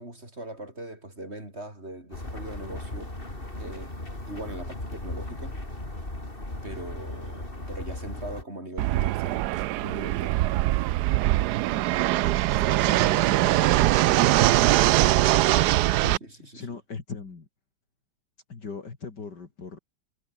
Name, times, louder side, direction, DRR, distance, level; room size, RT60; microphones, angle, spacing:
voice 1, 0.0-3.2 3.6-4.0 4.3-5.6 6.6-9.5 9.8-10.6 12.0-13.6 16.2-16.8, right 1 dB, 30° right, 7.8 m, -41 dB
sound 1, 2.1-8.4, left 1 dB, 25° left, 5.4 m, -37 dB
Fixed-wing aircraft airplane, 8.8-16.2, right 16 dB, 75° right, 0.9 m, -22 dB
voice 2, 12.5-12.9 16.0-17.5 18.5-19.8, left 4 dB, 55° left, 3.4 m, -39 dB
omnidirectional pair, 2.2 m